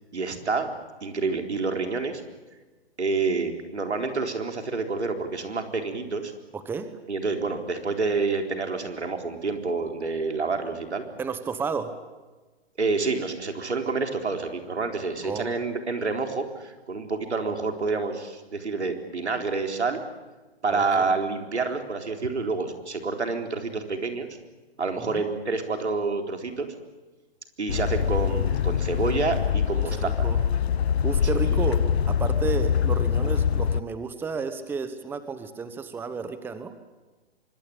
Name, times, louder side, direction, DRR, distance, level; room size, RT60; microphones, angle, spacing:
voice 1, 0.1-0.7 1.0-2.2 3.0-6.3 7.1-11.1 12.8-20.0 20.6-24.3 24.8-26.7 27.6-30.3, right 4 dB, 90° right, 4 dB, 4.0 m, -28 dB
voice 2, 6.5-6.9 11.2-11.9 15.2-15.5 20.7-21.1 25.0-25.3 29.8-30.4 31.0-31.8 32.1-36.7, right 5 dB, 5° right, 11 dB, 1.1 m, -32 dB
sound 1, 27.7-33.8, left 8 dB, 70° left, 1.0 m, -24 dB
25.0 x 21.0 x 8.8 m, 1.2 s
hypercardioid pair, 140°, 33 cm